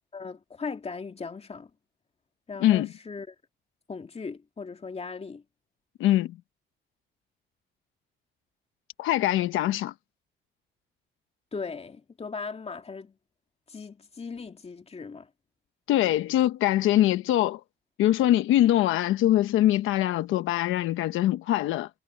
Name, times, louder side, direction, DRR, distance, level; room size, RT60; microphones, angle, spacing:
voice 1, 0.1-1.7 2.5-3.3 3.9-5.4 11.5-13.1 13.7-15.3, left 4 dB, 30° left, 2.2 m, -38 dB
voice 2, 6.0-6.4 9.0-9.9 15.9-17.6 18.0-21.9, left 13 dB, 90° left, 1.1 m, -23 dB
cardioid pair, 90°, 20 cm